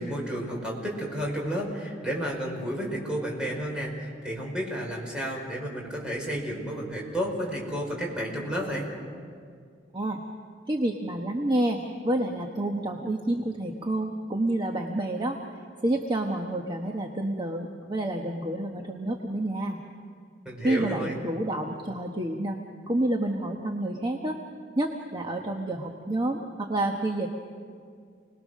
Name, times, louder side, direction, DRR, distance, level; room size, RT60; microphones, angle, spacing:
voice 1, 0.0-8.9 20.4-21.2, equal, 5° right, -2 dB, 5.1 m, -31 dB
voice 2, 10.7-11.8 12.0-15.4 15.8-19.8 20.6-22.6 22.9-24.4 24.8-27.3, right 1 dB, 25° right, 2 dB, 1.2 m, -29 dB
29.0 x 20.0 x 6.4 m, 2.2 s
head